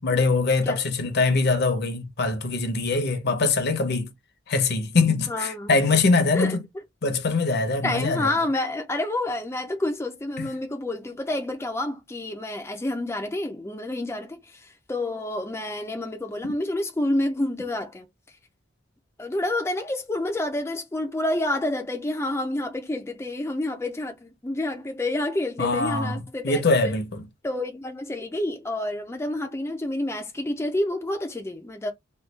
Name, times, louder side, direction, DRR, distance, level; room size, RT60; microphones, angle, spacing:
voice 1, 0.0-4.1 4.5-6.6 7.0-8.3 10.4-10.5 16.4-16.5 25.6-26.2 26.4-27.2, left 3 dB, 55° left, 0.7 m, -23 dB
voice 2, 5.3-5.7 6.3-6.6 7.8-18.1 19.2-26.9 27.4-31.9, left 1 dB, 15° left, 0.4 m, -29 dB
3.2 x 2.3 x 3.2 m
head